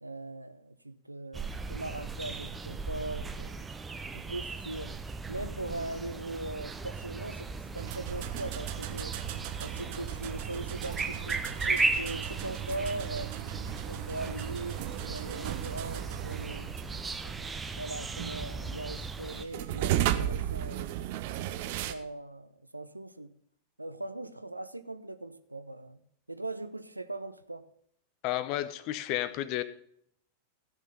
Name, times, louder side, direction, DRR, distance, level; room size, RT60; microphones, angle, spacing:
voice 1, 0.0-3.7 4.1-4.9 5.3-9.2 9.6-13.3 13.8-16.7 17.2-21.0 21.8-23.3 23.8-26.0 26.3-27.7, right 2 dB, 85° right, 0.7 m, -40 dB
sound 1, 1.3-19.4, right 3 dB, 15° right, 0.9 m, -37 dB
sound 2, 7.8-21.9, right 12 dB, 50° right, 0.8 m, -36 dB
voice 2, 28.2-29.6, left 13 dB, 40° left, 0.8 m, -32 dB
14.5 x 6.5 x 5.3 m
figure-of-eight pair, 90°, 0 cm